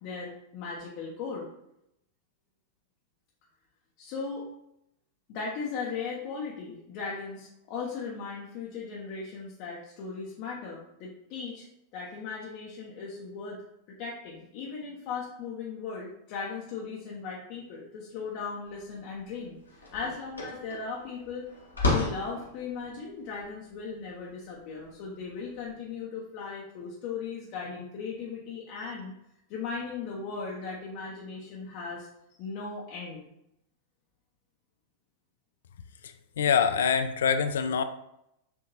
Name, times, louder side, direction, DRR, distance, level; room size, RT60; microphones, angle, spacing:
voice 1, 0.0-1.5 4.0-4.5 5.3-11.7 11.9-13.6 14.0-21.5 21.9-29.1 29.5-33.2, left 5 dB, 45° left, -4 dB, 0.8 m, -37 dB
sound 1, 18.8-18.9 19.3-25.7, left 2 dB, 80° left, 1.1 m, -34 dB
voice 2, 36.4-37.8, left 7 dB, 65° left, 10 dB, 0.3 m, -24 dB
6.8 x 2.8 x 2.7 m, 0.81 s
figure-of-eight pair, 90°, 0 cm